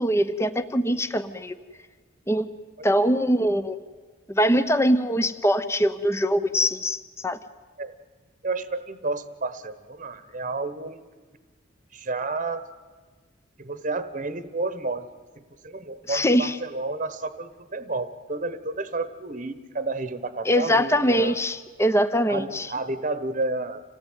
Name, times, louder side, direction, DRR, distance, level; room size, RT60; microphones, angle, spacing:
voice 1, 0.0-1.5 2.3-2.5 2.8-3.8 4.3-7.4 16.1-16.6 20.4-22.7, equal, 15° left, 11 dB, 0.9 m, -22 dB
voice 2, 8.4-11.0 11.9-12.7 13.6-15.0 15.6-21.3 22.3-23.8, right 3 dB, 40° right, 13 dB, 1.1 m, -31 dB
27.5 x 17.5 x 9.3 m, 1.4 s
head